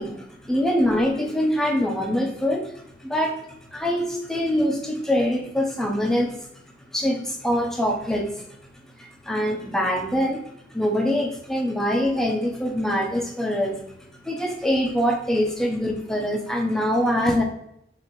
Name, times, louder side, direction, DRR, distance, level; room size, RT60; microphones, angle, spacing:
voice 1, 0.0-2.7 3.0-6.4 6.9-8.5 9.0-10.4 10.7-13.8 14.2-17.4, equal, 5° left, 1 dB, 0.4 m, -24 dB
4.1 x 2.5 x 3.0 m, 0.79 s
head